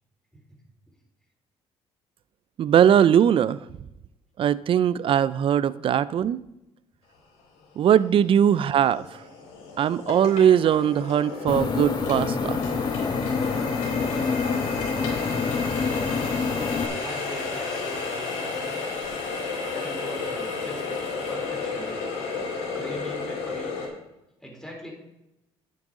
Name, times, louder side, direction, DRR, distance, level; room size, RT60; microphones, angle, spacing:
voice 1, 2.6-3.6 4.4-6.4 7.8-9.1 9.8-12.6, right 9 dB, 50° right, 18 dB, 0.4 m, -20 dB
Water tap faucet, 7.4-7.5 8.1-23.9, left 4 dB, 85° left, 4.1 m, -32 dB
sound 1, 11.5-16.9, left 5 dB, 35° left, 1.0 m, -27 dB
voice 2, 16.9-18.8 19.7-20.8 21.3-22.0 22.7-23.7 24.4-24.9, equal, 5° left, -1 dB, 3.9 m, -41 dB
10.0 x 8.0 x 3.7 m, 0.91 s
supercardioid pair, 85°, 12 cm